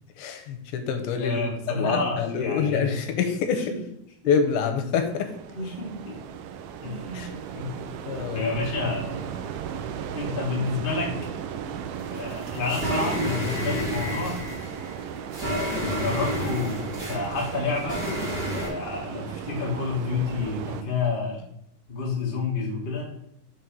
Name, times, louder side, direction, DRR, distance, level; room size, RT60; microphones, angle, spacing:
voice 1, 0.2-1.4 1.7-3.7 4.3-5.3 7.1-7.3 8.1-8.6 10.2-10.3, left 6 dB, 80° left, 6 dB, 2.5 m, -26 dB
voice 2, 1.2-2.9 5.5-6.2 6.8-7.2 7.5-7.7 8.3-9.3 10.1-11.1 12.1-14.4 15.4-18.0 18.5-21.4 21.9-23.1, left 3 dB, 45° left, -4 dB, 0.6 m, -29 dB
sound 1, 5.0-20.8, right 8 dB, 80° right, 2.3 m, -36 dB
sound 2, 12.0-18.7, equal, 30° right, 2.5 m, -30 dB
6.3 x 4.6 x 5.3 m, 0.75 s
omnidirectional pair, 4.5 m